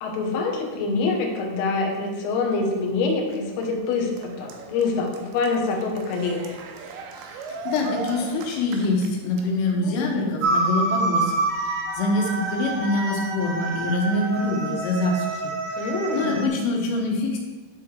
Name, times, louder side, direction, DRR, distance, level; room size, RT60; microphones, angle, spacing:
voice 1, 0.0-6.6 9.8-10.3 15.8-16.5, left 3 dB, 70° left, 0 dB, 2.6 m, -26 dB
Cheering, 2.7-9.8, right 4 dB, 85° right, 2.7 m, -39 dB
voice 2, 7.7-15.5 16.1-17.4, left 2 dB, 90° left, 0 dB, 3.7 m, -25 dB
sound 1, 10.4-16.5, right 3 dB, 70° right, 2.3 m, -27 dB
10.5 x 3.7 x 4.6 m, 1.3 s
omnidirectional pair, 5.7 m